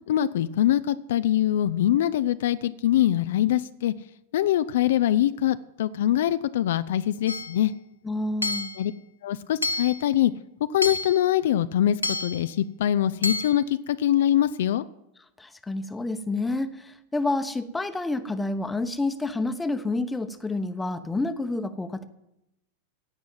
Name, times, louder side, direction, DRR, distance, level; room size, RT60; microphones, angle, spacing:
voice 1, 0.1-3.9 4.3-7.7 8.8-8.9 9.2-10.3 10.7-14.8, left 12 dB, 55° left, 13 dB, 0.5 m, -23 dB
Hammer / Chink clink, 7.3-7.6 8.4-8.9 9.6-10.1 10.8-11.2 12.0-12.5 13.2-13.6, left 2 dB, 85° left, 0.7 m, -29 dB
voice 2, 8.0-8.7 15.4-22.0, left 2 dB, 10° left, 10 dB, 1.1 m, -29 dB
16.0 x 6.2 x 9.2 m, 0.86 s
figure-of-eight pair, 90°, 0 cm